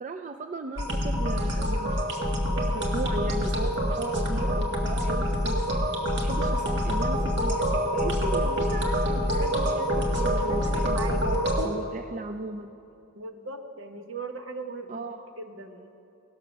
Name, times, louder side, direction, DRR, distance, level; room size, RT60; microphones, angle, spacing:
voice 1, 0.0-2.1 2.7-5.6 6.1-12.7 14.9-15.3, right 2 dB, 35° right, 7 dB, 0.4 m, -36 dB
sound 1, 0.8-11.7, equal, 55° right, 1.6 m, -26 dB
voice 2, 10.4-11.9 13.1-15.0 15.4-15.9, right 3 dB, 75° right, 6 dB, 1.0 m, -38 dB
17.5 x 6.8 x 6.1 m, 2.8 s
head